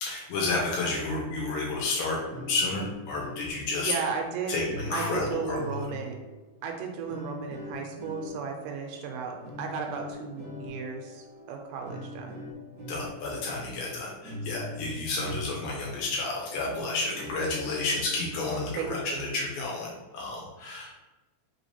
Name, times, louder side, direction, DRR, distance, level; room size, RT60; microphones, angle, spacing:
voice 1, 0.0-2.2 2.5-3.9 4.5-5.6 12.9-21.0, left 3 dB, 85° left, -3 dB, 2.2 m, -31 dB
Acoustic Guitar and Keys - Plains Soundtrack, 0.7-15.8 16.2-16.3 16.6-18.8, left 2 dB, 50° right, 1.2 m, -43 dB
voice 2, 3.8-4.6 4.9-6.2 6.6-12.4 18.8-19.3, right 6 dB, 85° right, 2 dB, 2.2 m, -35 dB
5.1 x 3.1 x 2.8 m, 1.1 s
omnidirectional pair, 3.8 m